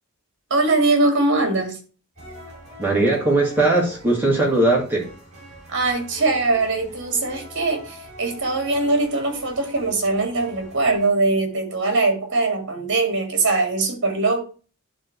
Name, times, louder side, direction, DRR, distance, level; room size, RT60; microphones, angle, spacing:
voice 1, 0.5-1.8 5.7-14.4, right 3 dB, 55° right, 6 dB, 2.2 m, -21 dB
sound 1, 2.1-11.1, right 1 dB, 30° right, 4.4 m, -43 dB
voice 2, 2.8-5.1, right 2 dB, 10° right, -3 dB, 2.3 m, -19 dB
11.0 x 3.8 x 4.6 m, 0.36 s
head